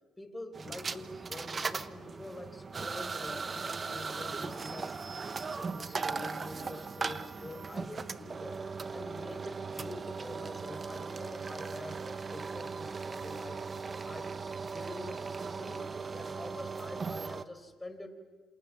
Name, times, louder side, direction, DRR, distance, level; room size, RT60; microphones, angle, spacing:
voice 1, 0.2-5.0 5.5-8.6 8.9-14.3 14.7-18.1, left 2 dB, 15° left, 7 dB, 4.3 m, -46 dB
sound 1, 0.5-17.5, right 4 dB, 35° right, 1.0 m, -38 dB
28.0 x 27.5 x 7.4 m, 1.4 s
cardioid pair, 90°, 0 cm